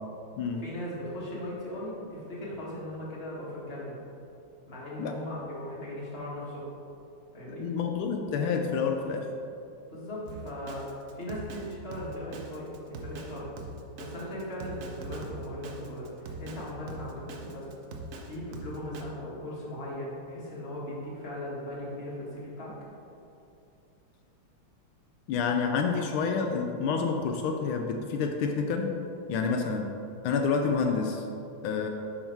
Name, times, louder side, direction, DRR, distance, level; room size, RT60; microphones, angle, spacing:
voice 1, 0.5-4.0 4.7-6.7 7.3-7.7 9.9-13.5 14.0-17.7 18.2-22.7, left 1 dB, 30° left, -6 dB, 1.8 m, -38 dB
voice 2, 7.5-9.3 25.3-29.0 29.3-30.0 30.2-31.2 31.6-31.9, left 5 dB, 85° left, 4 dB, 1.4 m, -28 dB
Drum kit, 10.3-19.0, right 2 dB, 70° right, 0.7 m, -42 dB
10.5 x 4.0 x 4.5 m, 2.7 s
omnidirectional pair, 2.3 m